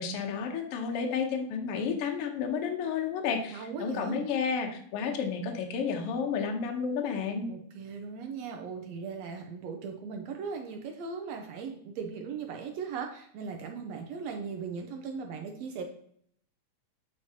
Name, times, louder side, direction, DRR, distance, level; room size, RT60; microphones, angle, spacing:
voice 1, 0.0-7.5, left 6 dB, 70° left, 3 dB, 1.4 m, -31 dB
voice 2, 3.5-4.2 7.5-15.8, right 5 dB, 75° right, 3 dB, 1.6 m, -38 dB
8.4 x 4.8 x 2.8 m, 0.64 s
omnidirectional pair, 3.5 m